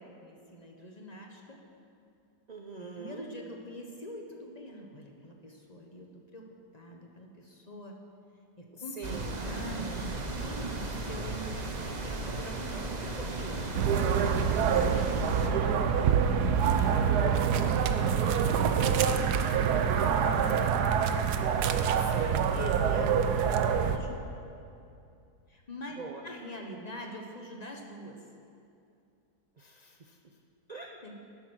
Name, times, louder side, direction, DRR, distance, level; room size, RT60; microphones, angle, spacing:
voice 1, 0.0-1.6 2.8-6.5 6.7-8.0 8.6-13.6 14.3-16.1 16.8-21.0 22.5-23.2 23.8-24.2 25.5-26.0 26.2-28.2 31.0-31.1, equal, 30° left, 1 dB, 1.1 m, -44 dB
voice 2, 2.5-3.3 8.7-9.4 22.0-22.6 26.0-26.2 29.6-30.2 30.7-30.9, right 2 dB, 65° right, 3 dB, 0.4 m, -43 dB
sound 1, 9.0-15.5, right 2 dB, 30° right, 0.9 m, -35 dB
sound 2, 13.7-24.0, right 7 dB, 80° right, 1.3 m, -26 dB
12.0 x 10.5 x 6.3 m, 2.6 s
omnidirectional pair, 1.7 m